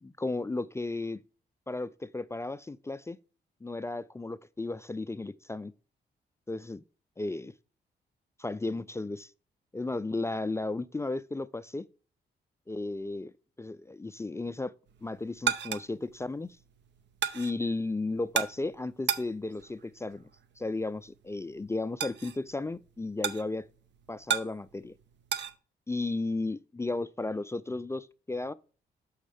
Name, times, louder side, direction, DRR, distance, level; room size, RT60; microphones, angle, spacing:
voice 1, 0.0-1.2 1.7-3.2 3.6-5.7 6.5-6.8 7.2-7.5 8.4-9.3 9.7-11.9 12.7-13.3 13.6-14.7 15.0-16.6 17.3-20.3 20.6-23.7 24.1-24.9 25.9-28.5, left 2 dB, 15° left, 0.3 m, -34 dB
sound 1, 14.9-25.5, right 8 dB, 65° right, 0.6 m, -36 dB
6.4 x 6.2 x 3.4 m
supercardioid pair, 55°, 20 cm